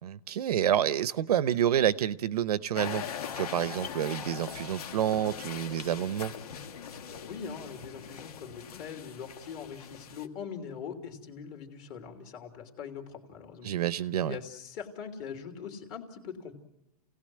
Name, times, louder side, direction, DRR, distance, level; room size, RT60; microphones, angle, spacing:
voice 1, 0.0-3.0 3.3-6.3 13.6-14.4, right 10 dB, 70° right, 15 dB, 0.9 m, -28 dB
sound 1, 2.8-10.3, left 7 dB, 65° left, 1.6 m, -41 dB
voice 2, 7.1-13.7 14.2-16.5, left 7 dB, 30° left, 4 dB, 3.0 m, -42 dB
29.0 x 17.5 x 7.7 m, 0.91 s
hypercardioid pair, 165°, 21 cm